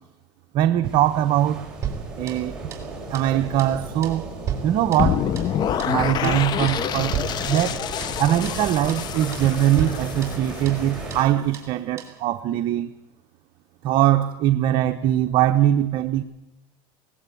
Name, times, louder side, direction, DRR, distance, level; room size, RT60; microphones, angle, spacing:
voice 1, 0.5-1.7 2.2-2.6 3.1-4.2 4.6-5.2 5.9-7.2 7.5-7.8 8.2-12.9 13.8-16.2, right 12 dB, 50° right, 7 dB, 0.9 m, -21 dB
sound 1, 0.8-11.2, right 2 dB, 5° right, 5.5 m, -35 dB
sound 2, 1.8-2.9 3.1-3.3 3.6-3.8 4.0-5.5 5.8-6.0 6.2-6.4 6.7-6.9 7.1-8.2 8.5-8.6 8.9-9.1 9.3-9.5 9.8-10.9 11.1-11.3 11.5-11.7 12.0-12.2, right 8 dB, 25° right, 4.5 m, -34 dB
sound 3, 5.0-11.0, left 9 dB, 40° left, 0.8 m, -27 dB
20.0 x 18.5 x 8.5 m, 0.98 s
supercardioid pair, 125°, 11 cm